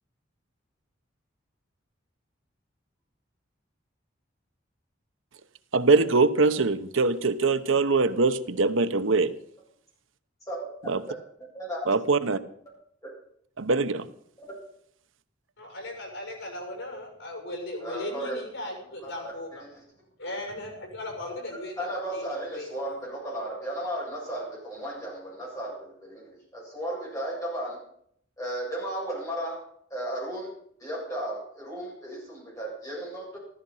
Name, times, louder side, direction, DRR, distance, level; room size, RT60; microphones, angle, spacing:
voice 1, 5.7-9.3 10.9-11.0 11.9-12.4 13.6-14.1, right 3 dB, 75° right, 11 dB, 0.9 m, -22 dB
voice 2, 11.4-11.9 14.4-14.5 17.8-18.3 19.0-19.7 21.8-27.8 28.4-30.5 30.8-33.4, right 1 dB, 15° left, -5 dB, 7.9 m, -35 dB
voice 3, 15.6-19.5 20.2-21.9 22.1-22.2 22.5-22.9, left 1 dB, 80° left, 2 dB, 6.7 m, -37 dB
14.5 x 14.0 x 5.6 m, 0.65 s
head